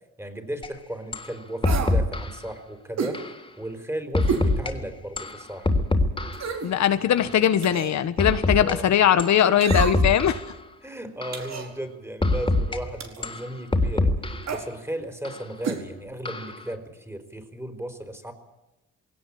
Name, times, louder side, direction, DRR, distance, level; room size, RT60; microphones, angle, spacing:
voice 1, 0.2-3.2 3.6-5.7 8.6-9.0 10.8-14.1 14.5-18.3, right 1 dB, 10° right, 8 dB, 4.6 m, -35 dB
sound 1, 0.6-0.7 1.1-1.3 1.6-2.4 3.1-3.4 4.1-4.7 5.2-6.5 7.2-7.4 8.2-8.7 9.2-9.4 9.7-10.5 11.2-11.5 12.2-12.8 13.2-14.5 15.2-15.4 16.3-16.6, left 2 dB, 15° left, 3.5 m, -24 dB
sound 2, 1.6-2.0 3.0-3.2 4.3-4.5 5.0-5.1 6.3-6.7 7.6-8.0 9.6-10.2 11.3-11.7 13.0-13.3 14.4-14.7 15.6-15.8 16.1-16.2, right 6 dB, 60° right, 4.6 m, -30 dB
voice 2, 6.6-10.4, left 10 dB, 65° left, 11 dB, 1.5 m, -20 dB
21.0 x 18.0 x 8.8 m, 0.98 s
cardioid pair, 90°, 30 cm